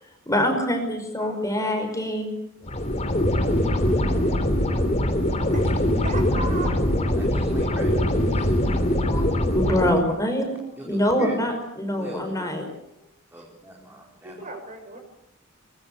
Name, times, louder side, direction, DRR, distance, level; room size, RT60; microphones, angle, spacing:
voice 1, 0.3-2.3 8.7-12.6, left 1 dB, 15° left, 4 dB, 5.5 m, -25 dB
voice 2, 1.2-1.7 4.7-5.0 5.5-6.8 14.2-15.0, right 2 dB, 40° right, 5 dB, 6.9 m, -37 dB
sound 1, 2.7-9.9, left 1 dB, 35° left, 3.2 m, -22 dB
voice 3, 6.3-6.9 7.1-9.1 10.8-11.4 11.9-12.3 12.7-12.8 13.3-14.5, equal, 10° right, -2 dB, 4.5 m, -40 dB
23.5 x 22.0 x 8.5 m, 0.80 s
head